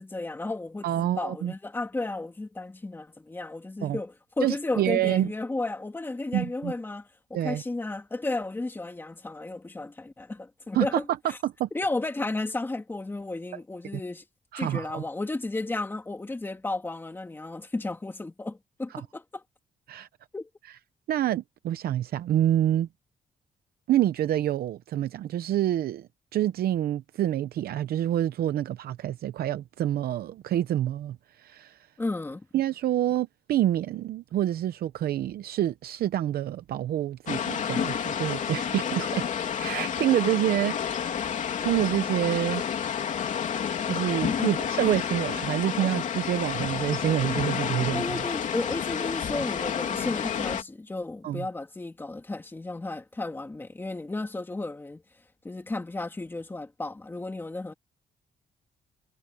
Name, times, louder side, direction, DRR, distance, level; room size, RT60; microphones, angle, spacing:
voice 1, 0.0-11.4 11.7-14.2 14.6-19.4 20.3-20.5 32.0-32.5 44.4-44.6 45.7-45.9 47.9-55.0 55.4-57.7, left 2 dB, 15° left, 2.2 m, -33 dB
voice 2, 0.8-1.5 3.8-4.0 4.4-5.3 6.3-6.7 7.3-7.6 10.7-11.0 11.4-11.7 13.5-13.6 14.5-15.0 19.9-20.1 21.1-22.9 23.9-31.8 32.5-39.3 39.6-40.8 41.6-42.6 43.9-48.0 51.2-51.5, right 12 dB, 75° right, 0.7 m, -27 dB
sound 1, 37.3-50.6, left 8 dB, 50° left, 3.0 m, -30 dB
wide cardioid pair, 170°, 16 cm